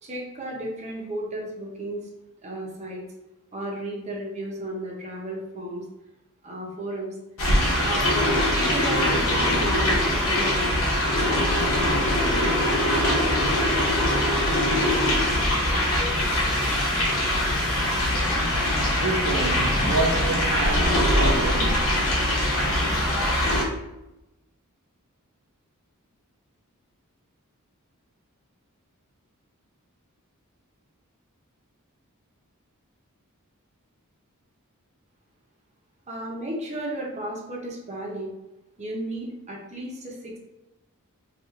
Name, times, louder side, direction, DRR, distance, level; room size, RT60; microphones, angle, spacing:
voice 1, 0.0-2.1 2.4-3.0 3.5-5.8 6.4-7.1 7.7-10.8 11.2-12.3 36.1-38.3 38.8-40.4, right 1 dB, 30° right, 0.8 m, -34 dB
sound 1, 7.4-23.6, left 1 dB, 65° left, 1.0 m, -22 dB
voice 2, 19.0-21.9, right 3 dB, 75° right, 0.5 m, -28 dB
3.0 x 2.4 x 3.6 m
head